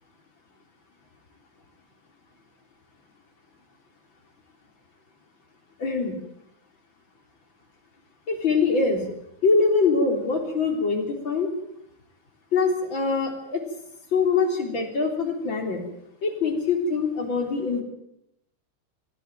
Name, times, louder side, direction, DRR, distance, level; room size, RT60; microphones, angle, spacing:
voice 1, 5.8-6.2 8.3-9.0 9.4-11.5 12.5-13.6 14.1-15.8 16.2-17.8, left 4 dB, 30° left, 4 dB, 3.7 m, -23 dB
20.0 x 16.0 x 9.2 m, 0.78 s
omnidirectional pair, 5.3 m